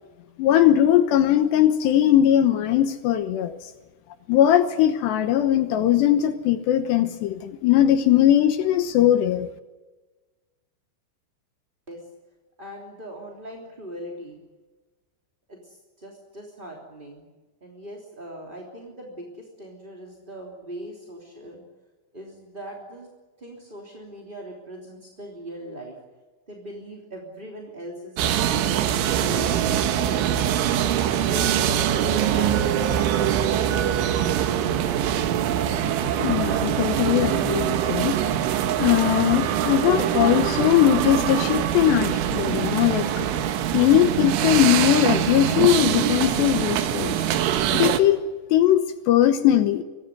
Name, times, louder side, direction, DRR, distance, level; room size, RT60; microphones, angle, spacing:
voice 1, 0.4-3.6 4.3-9.5 36.2-38.2 38.8-43.3 43.7-47.2 47.7-48.2 48.5-49.8, left 11 dB, 70° left, 8 dB, 2.9 m, -20 dB
voice 2, 12.6-14.4 15.5-17.3 17.6-21.6 22.1-23.1 23.4-26.0 26.5-30.8 31.2-34.9, right 1 dB, 15° right, -2 dB, 2.4 m, -40 dB
sound 1, 28.2-48.0, right 10 dB, 80° right, 3.7 m, -23 dB
25.5 x 18.5 x 9.5 m, 1.2 s
omnidirectional pair, 5.6 m